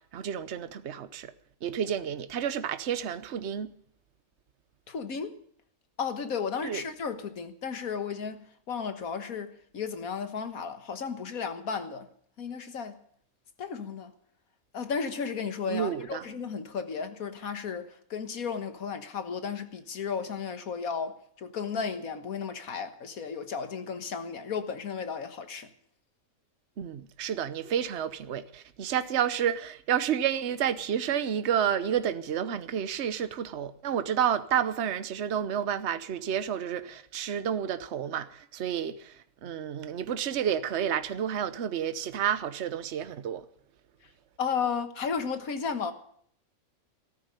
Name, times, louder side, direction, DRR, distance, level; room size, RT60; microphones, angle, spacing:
voice 1, 0.1-1.3 1.6-3.7 6.6-6.8 15.7-16.3 26.8-43.4, right 9 dB, 55° right, 1.1 m, -30 dB
voice 2, 4.9-5.4 6.0-12.1 12.4-12.9 13.6-14.1 14.7-25.7 44.4-45.9, left 6 dB, 85° left, 1.8 m, -34 dB
14.0 x 13.5 x 6.7 m
omnidirectional pair, 1.5 m